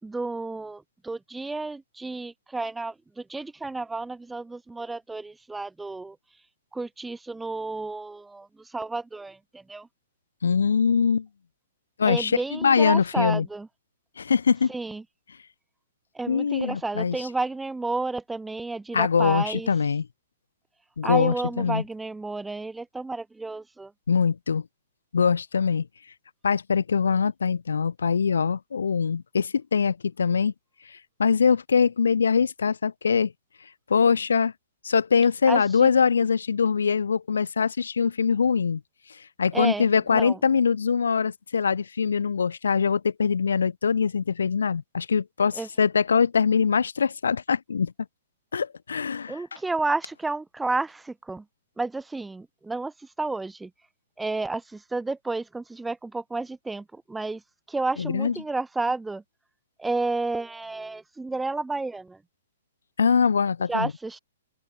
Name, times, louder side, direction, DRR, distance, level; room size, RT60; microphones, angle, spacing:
voice 1, 0.0-6.2 6.7-9.9 12.0-13.7 14.7-15.0 16.1-19.7 21.0-23.9 35.5-35.9 39.5-39.9 40.1-40.4 45.6-45.7 49.3-51.4 51.8-52.9 53.2-53.7 54.2-57.4 57.7-59.2 59.8-62.2 63.7-64.2, right 3 dB, 5° right, 5.7 m, -31 dB
voice 2, 10.4-11.3 12.0-13.5 14.2-14.7 16.3-17.2 18.9-20.1 21.0-21.8 24.1-24.6 25.1-25.9 26.4-30.5 31.2-33.3 33.9-34.5 34.8-38.8 39.4-47.9 48.5-49.4 58.0-58.3 63.0-63.9, left 6 dB, 85° left, 3.9 m, -23 dB
open air
hypercardioid pair, 135°, 0 cm